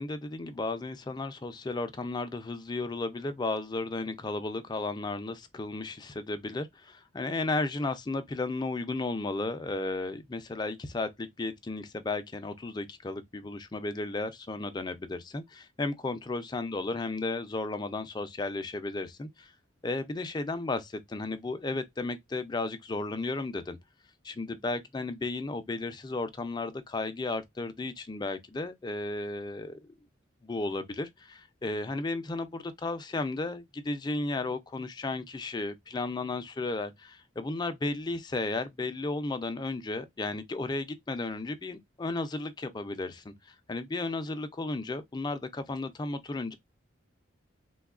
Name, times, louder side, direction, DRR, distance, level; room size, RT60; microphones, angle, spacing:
voice 1, 0.0-19.5 19.8-23.8 24.2-29.9 30.4-43.3 43.7-46.5, left 2 dB, 20° left, 0.4 m, -34 dB
3.4 x 2.2 x 2.3 m
head